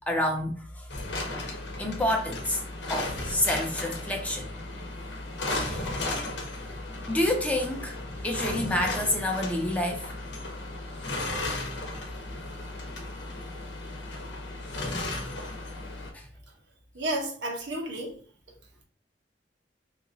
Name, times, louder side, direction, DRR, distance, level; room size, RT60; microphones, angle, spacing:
voice 1, 0.1-0.9 1.8-2.6 2.9-4.5 5.5-5.9 7.1-8.0 8.2-10.1 16.1-16.2, left 1 dB, 10° left, 0.6 m, -28 dB
sound 1, 0.9-16.1, left 2 dB, 80° left, 0.8 m, -35 dB
voice 2, 16.9-18.1, right 1 dB, 85° right, 0.9 m, -31 dB
3.6 x 2.9 x 2.7 m
head